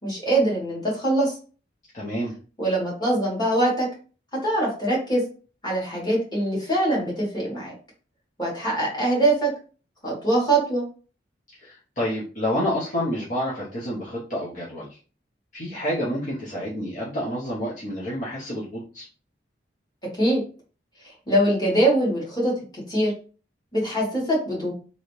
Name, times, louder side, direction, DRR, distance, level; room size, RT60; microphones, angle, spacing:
voice 1, 0.0-1.4 2.6-3.9 4.4-5.2 5.6-7.7 8.4-9.5 10.0-10.8 20.2-20.4 21.3-22.5 22.9-23.1 23.7-24.7, right 1 dB, 20° left, -4 dB, 1.8 m, -23 dB
voice 2, 1.9-2.3 11.6-15.0 15.5-19.1, equal, 45° left, -7 dB, 0.9 m, -29 dB
3.1 x 2.7 x 3.1 m, 0.37 s
head